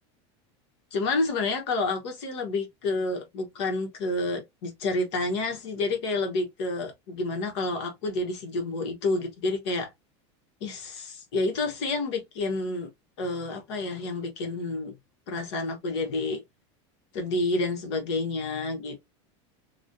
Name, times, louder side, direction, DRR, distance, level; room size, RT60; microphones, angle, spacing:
voice 1, 0.9-9.9 10.6-12.9 13.2-14.9 15.3-16.4 17.1-19.1, left 2 dB, 70° left, 1.3 m, -29 dB
3.1 x 2.4 x 2.7 m
supercardioid pair, 160°, 15 cm